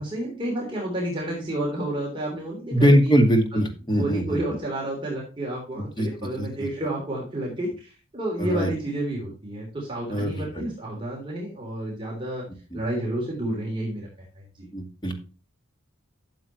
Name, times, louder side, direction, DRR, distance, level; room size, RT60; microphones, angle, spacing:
voice 1, 0.0-3.1 3.5-3.6 3.9-12.4 12.7-14.1 14.3-14.7, right 1 dB, 25° right, -3 dB, 3.3 m, -30 dB
voice 2, 2.7-4.4 5.8-6.7 8.4-8.7 10.1-10.7 12.7-12.8 14.7-15.2, equal, 20° left, 3 dB, 2.2 m, -22 dB
13.0 x 7.6 x 3.0 m, 0.34 s
head